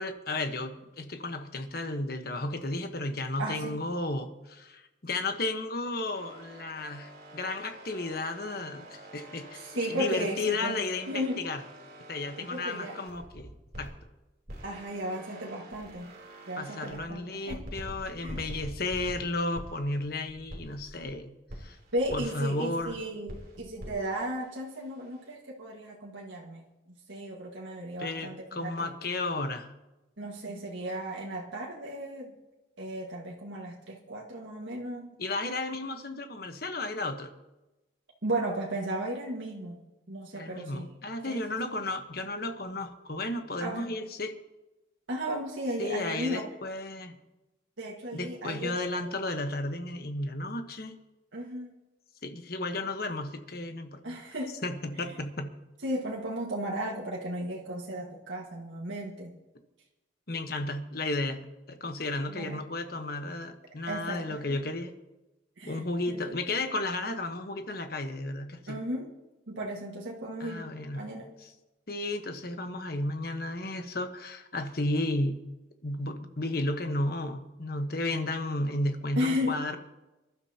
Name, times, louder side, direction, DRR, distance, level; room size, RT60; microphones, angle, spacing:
voice 1, 0.0-11.6 12.1-13.5 13.8-13.9 16.6-21.8 22.1-23.0 28.0-29.7 35.2-37.3 40.3-44.3 45.8-47.2 48.1-50.9 52.2-54.0 54.6-55.5 60.3-64.9 65.7-68.8 70.4-71.1 71.4-71.5 71.9-75.4 75.8-79.8, left 2 dB, 50° left, 6 dB, 1.2 m, -33 dB
voice 2, 3.4-3.8 9.5-10.7 11.1-11.4 12.4-13.0 14.6-16.1 16.5-17.6 18.2-18.4 21.9-26.6 27.1-28.9 30.2-32.4 32.8-35.1 38.2-40.9 41.2-41.4 43.6-44.0 45.1-46.4 47.8-49.1 51.3-51.7 54.0-54.6 55.8-59.3 62.3-62.6 63.9-64.6 65.6-66.2 68.7-69.1 69.5-71.3 79.2-79.6, right 1 dB, 85° right, -3 dB, 1.8 m, -35 dB
sound 1, 6.1-14.0 14.4-17.1 17.5-21.1 21.5-22.9 23.3-25.3, right 1 dB, 50° right, 3.2 m, -46 dB
24.5 x 12.0 x 2.9 m, 1.0 s
head